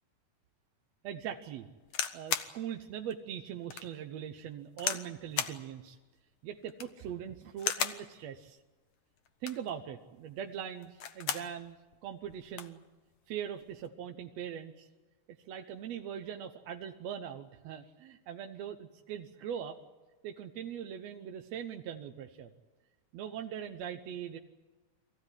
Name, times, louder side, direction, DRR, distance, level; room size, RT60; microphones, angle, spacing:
voice 1, 1.0-1.7 2.1-6.0 6.4-8.6 9.4-11.8 12.0-12.8 13.3-14.9 15.3-19.8 20.2-22.5 23.1-24.4, right 9 dB, 70° right, 5 dB, 1.8 m, -41 dB
sound 1, 1.8-2.5 3.1-3.2 3.7-3.9 4.8-5.1 5.4-5.6 6.6-7.0 7.6-8.0 9.3-9.7 10.8-11.5 11.9-12.0 12.2-12.7 13.6-13.9, left 8 dB, 65° left, 1.3 m, -35 dB
23.5 x 15.5 x 9.8 m, 1.3 s
omnidirectional pair, 3.6 m